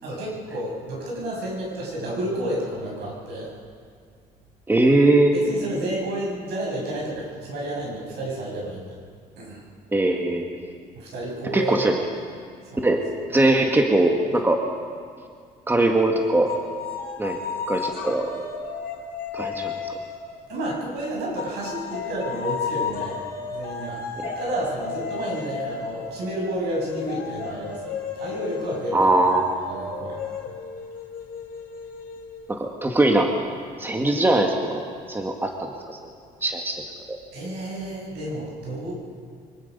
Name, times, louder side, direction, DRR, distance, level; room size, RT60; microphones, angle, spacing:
voice 1, 0.0-3.5 5.3-9.0 9.4-9.6 10.9-11.9 12.7-12.9 20.5-23.1 23.5-24.0 24.4-29.1 29.7-30.3 37.3-38.9, right 1 dB, 80° right, -3 dB, 7.8 m, -31 dB
voice 2, 4.7-5.3 9.9-10.4 11.5-12.0 12.8-13.0 13.3-14.6 15.7-16.5 17.2-17.4 17.7-18.3 19.3-19.9 24.2-24.3 28.9-29.6 32.5-33.3 33.8-36.0 36.4-36.8 37.1-37.2, right 2 dB, 10° right, 2 dB, 1.8 m, -21 dB
sound 1, 16.5-20.8 21.4-32.7, left 6 dB, 60° left, 3.2 m, -34 dB
24.0 x 20.0 x 5.5 m, 2.1 s
cardioid pair, 110°, 17 cm